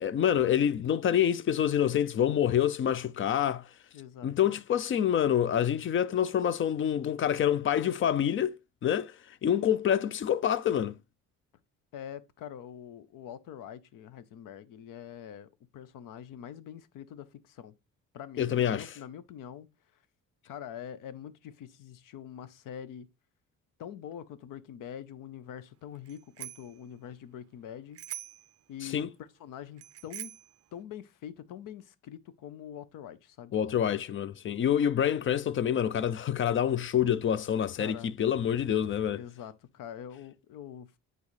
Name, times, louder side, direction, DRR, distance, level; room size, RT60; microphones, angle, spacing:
voice 1, 0.0-3.7 4.2-8.6 8.8-11.0 18.4-18.9 28.8-29.1 33.5-39.2, left 9 dB, 40° left, 0.4 m, -27 dB
voice 2, 3.9-4.5 11.9-17.7 18.1-19.7 20.5-23.1 23.8-28.0 28.7-29.1 29.4-30.3 30.7-33.5 37.8-38.2 39.1-41.0, left 9 dB, 80° left, 0.8 m, -44 dB
Bicycle bell, 26.1-26.8 28.0-28.5 29.8-30.5, right 13 dB, 50° right, 0.4 m, -43 dB
9.6 x 4.0 x 3.2 m
cardioid pair, 135°, 32 cm